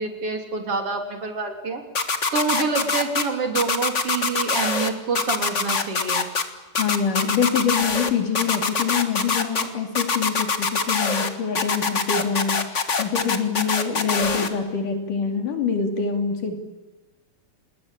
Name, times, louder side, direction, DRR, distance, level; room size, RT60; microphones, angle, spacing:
voice 1, 0.0-1.8 2.3-6.3, right 4 dB, 45° right, 5 dB, 3.8 m, -27 dB
sound 1, 1.9-3.2 3.5-4.9 5.1-6.4 6.7-8.1 8.3-9.6 9.9-11.3 11.5-14.5, left 5 dB, 40° left, 1.1 m, -23 dB
voice 2, 6.8-16.6, left 6 dB, 75° left, 5 dB, 4.4 m, -25 dB
28.5 x 20.0 x 8.9 m, 1.2 s
omnidirectional pair, 3.7 m